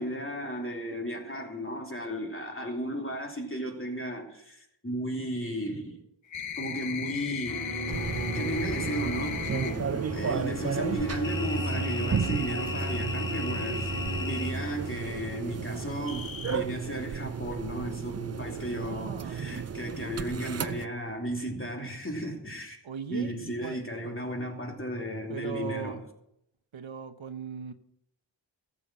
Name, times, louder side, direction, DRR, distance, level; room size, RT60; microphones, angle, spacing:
voice 1, 0.0-6.0 6.6-7.8 8.3-13.9 14.2-22.8 23.1-26.0, equal, 25° left, 2.8 m, -34 dB
sound 1, 6.3-9.8 11.2-14.5 16.1-16.6, left 6 dB, 75° left, 1.1 m, -37 dB
sound 2, 7.5-16.3, equal, 55° left, 4.3 m, -36 dB
sound 3, 7.9-20.9, right 7 dB, 35° right, 0.5 m, -34 dB
voice 2, 11.7-12.4 14.7-14.9 18.7-19.8 22.8-23.8 25.3-26.0 26.7-27.7, right 6 dB, 85° right, 0.9 m, -39 dB
14.0 x 7.0 x 6.0 m
wide cardioid pair, 40°, 46 cm